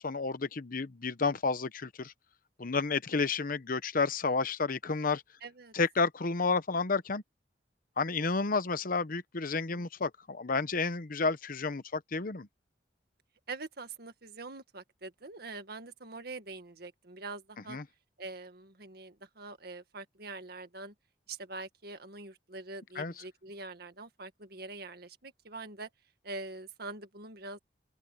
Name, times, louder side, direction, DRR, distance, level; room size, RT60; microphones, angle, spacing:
voice 1, 0.0-2.1 2.6-5.2 5.7-7.2 8.0-12.5 17.7-17.8 23.0-23.1, left 4 dB, 55° left, 0.9 m, -31 dB
voice 2, 5.4-5.7 9.7-9.9 13.5-17.8 18.2-20.9 21.3-25.9 26.2-27.6, right 3 dB, 60° right, 1.9 m, -44 dB
open air
head